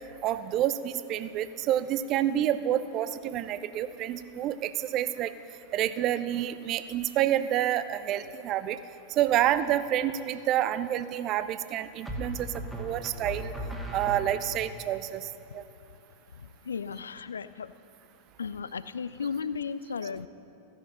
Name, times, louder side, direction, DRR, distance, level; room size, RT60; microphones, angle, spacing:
voice 1, 0.2-5.3 5.7-8.8 9.1-12.5 12.8-13.5 13.9-15.6, right 11 dB, 35° right, 14 dB, 0.5 m, -28 dB
sound 1, 9.4-9.9 12.0-14.7, right 1 dB, 10° right, 1.7 m, -38 dB
voice 2, 16.4-17.7 18.4-20.3, left 6 dB, 70° left, 15 dB, 0.3 m, -35 dB
15.5 x 10.5 x 5.5 m, 2.8 s
figure-of-eight pair, 90°, 0 cm